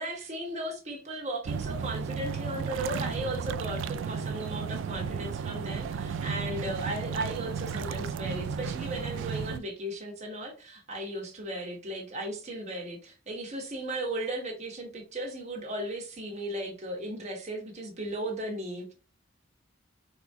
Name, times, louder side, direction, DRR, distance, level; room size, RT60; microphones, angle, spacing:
voice 1, 0.0-18.9, right 1 dB, 35° right, 1.3 m, -36 dB
sound 1, 1.5-9.6, right 6 dB, 70° right, 0.3 m, -34 dB
4.1 x 2.9 x 3.5 m
head